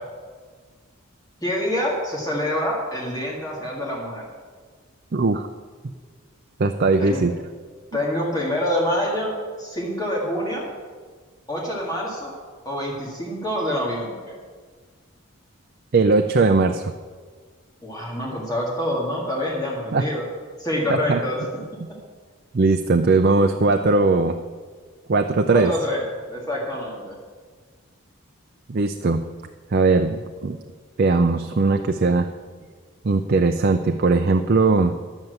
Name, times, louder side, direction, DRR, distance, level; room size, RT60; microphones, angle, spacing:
voice 1, 1.4-4.2 7.0-7.2 7.9-10.6 11.5-12.3 12.7-14.3 17.8-20.2 20.6-21.4 25.5-27.2, left 1 dB, 15° left, -3 dB, 2.0 m, -26 dB
voice 2, 5.1-5.5 6.6-7.3 15.9-16.9 19.9-20.0 20.9-21.2 22.5-24.4 25.1-25.7 28.7-29.2 29.7-30.6 31.0-32.3 33.0-34.9, right 3 dB, 45° right, 6 dB, 0.5 m, -19 dB
10.5 x 7.3 x 7.9 m, 1.5 s
head